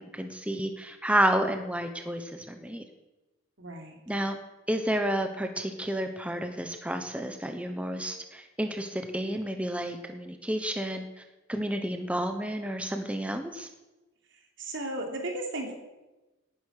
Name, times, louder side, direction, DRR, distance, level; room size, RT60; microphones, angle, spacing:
voice 1, 0.1-2.8 4.1-4.4 4.7-11.2 11.5-13.7, right 1 dB, 5° right, 6 dB, 1.0 m, -30 dB
voice 2, 3.6-4.0 14.6-15.7, right 1 dB, 65° right, 2 dB, 3.3 m, -35 dB
18.5 x 11.0 x 6.6 m, 1.1 s
head